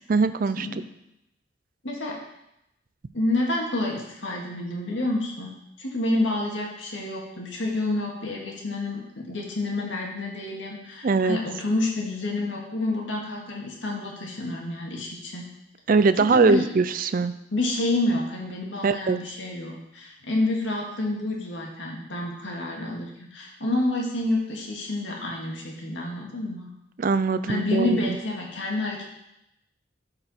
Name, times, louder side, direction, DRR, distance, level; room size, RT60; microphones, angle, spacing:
voice 1, 0.1-0.7 11.0-11.4 15.9-17.3 18.8-19.2 27.0-28.2, right 4 dB, 50° right, 12 dB, 0.4 m, -21 dB
voice 2, 1.8-2.2 3.1-15.5 16.2-16.7 17.5-26.7 27.5-29.0, left 2 dB, 85° left, -1 dB, 2.1 m, -28 dB
12.5 x 5.0 x 4.4 m, 0.84 s
head